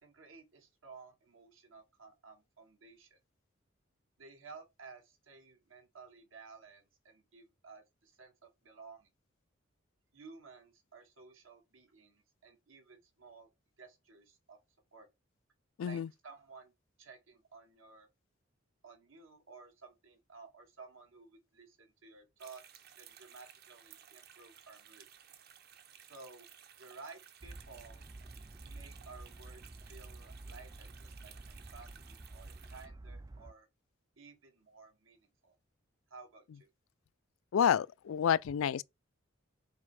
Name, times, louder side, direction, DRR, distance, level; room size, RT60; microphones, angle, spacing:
voice 1, 0.0-3.2 4.2-9.1 10.1-13.5 13.8-14.6 14.9-15.1 15.8-16.7 17.0-18.1 18.8-25.0 26.0-26.5 26.8-28.0 28.6-33.7 34.2-35.6 36.1-36.7, right 4 dB, 80° right, 1.8 m, -55 dB
sound 1, 22.4-32.9, right 9 dB, 50° right, 0.8 m, -57 dB
sound 2, 27.4-33.5, right 2 dB, 20° right, 0.4 m, -50 dB
voice 2, 37.5-38.8, left 8 dB, 85° left, 0.3 m, -29 dB
5.3 x 4.2 x 4.8 m
head